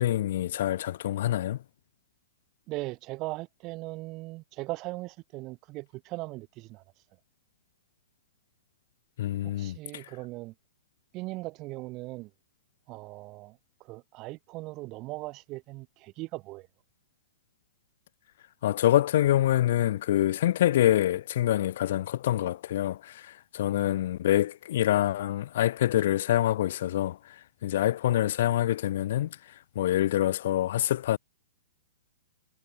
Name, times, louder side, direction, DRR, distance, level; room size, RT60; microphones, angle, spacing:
voice 1, 0.0-1.6 9.2-10.0 18.6-27.3 27.6-29.4 29.7-31.2, left 13 dB, 55° left, 1.5 m, -26 dB
voice 2, 2.7-6.8 9.4-10.5 11.1-12.3 12.9-16.7, right 21 dB, 30° right, 5.1 m, -39 dB
hypercardioid pair, 160°, 0 cm